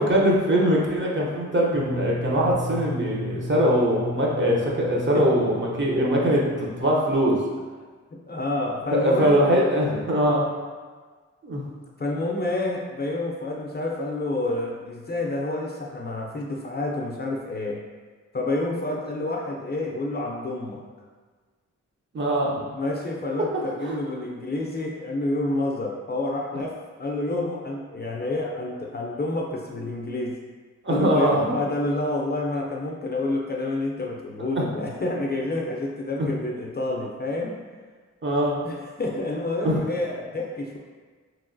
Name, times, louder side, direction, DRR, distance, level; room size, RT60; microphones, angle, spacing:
voice 1, 0.0-7.4 8.9-10.4 11.4-11.6 22.1-22.6 23.9-24.0 30.8-31.6 34.6-34.7 36.2-36.3 38.2-38.6 39.6-39.8, equal, 40° right, -4 dB, 0.7 m, -22 dB
sound 1, 1.7-6.8, left 1 dB, 75° right, 1.4 m, -34 dB
voice 2, 8.3-9.4 12.0-17.8 18.3-20.8 22.7-30.4 30.9-37.6 38.6-40.8, left 2 dB, 35° left, -1 dB, 0.4 m, -28 dB
3.0 x 2.7 x 2.5 m, 1.5 s
wide cardioid pair, 75°, 29 cm